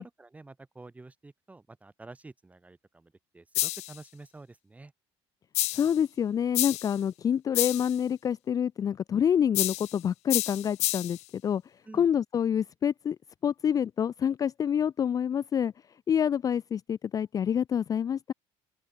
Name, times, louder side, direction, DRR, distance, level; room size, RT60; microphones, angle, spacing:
voice 1, 0.0-4.9 11.8-12.1, right 3 dB, 10° right, 6.1 m, -49 dB
sound 1, 3.5-4.0 5.5-6.0 6.5-7.0 7.5-8.0 9.5-10.0 10.3-11.2, left 19 dB, 70° left, 0.7 m, -29 dB
voice 2, 5.7-11.6 11.9-13.2 13.4-15.7 16.1-18.3, left 8 dB, 30° left, 0.5 m, -27 dB
open air
cardioid pair, 145°, 12 cm